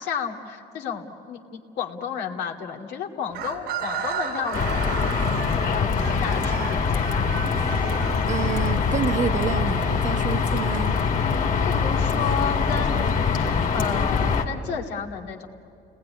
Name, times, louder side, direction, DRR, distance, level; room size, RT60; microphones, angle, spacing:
voice 1, 0.0-5.0 5.6-7.4 11.2-15.5, left 6 dB, 80° left, 1 dB, 2.5 m, -32 dB
Chicken rooster, 3.3-9.3, right 6 dB, 90° right, 4.0 m, -33 dB
sound 1, 4.5-14.4, left 5 dB, 50° left, 2.4 m, -23 dB
voice 2, 8.3-11.0, right 7 dB, 45° right, 8 dB, 1.2 m, -28 dB
30.0 x 19.5 x 9.8 m, 2.4 s
cardioid pair, 110°, 17 cm